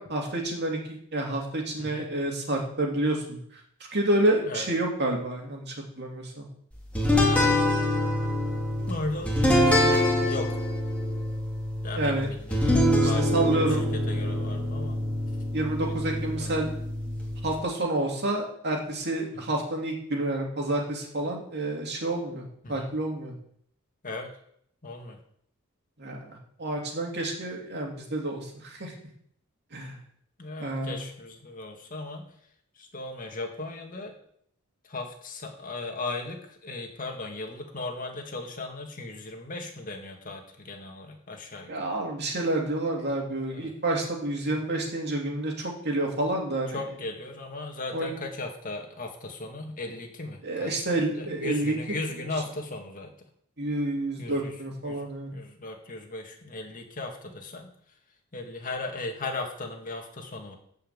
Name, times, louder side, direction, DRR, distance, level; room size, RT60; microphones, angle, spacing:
voice 1, 0.0-3.4 3.9-6.5 12.0-12.3 13.0-13.8 15.5-16.7 17.4-23.3 26.0-26.2 26.6-28.9 29.7-30.0 30.6-31.0 41.7-46.8 47.9-48.1 50.4-52.1 53.6-55.3, right 1 dB, 50° right, 0 dB, 2.8 m, -29 dB
voice 2, 1.8-2.1 4.4-4.7 8.8-10.6 11.8-15.1 15.8-16.5 22.6-22.9 24.0-24.3 24.8-25.2 30.4-32.3 32.8-34.1 34.8-41.9 43.5-43.7 46.7-53.1 54.2-54.6 54.8-57.7 58.3-60.5, left 2 dB, 40° left, 2 dB, 2.1 m, -37 dB
sound 1, 7.0-17.6, left 1 dB, 5° left, 2.9 m, -25 dB
13.0 x 5.7 x 8.1 m, 0.67 s
head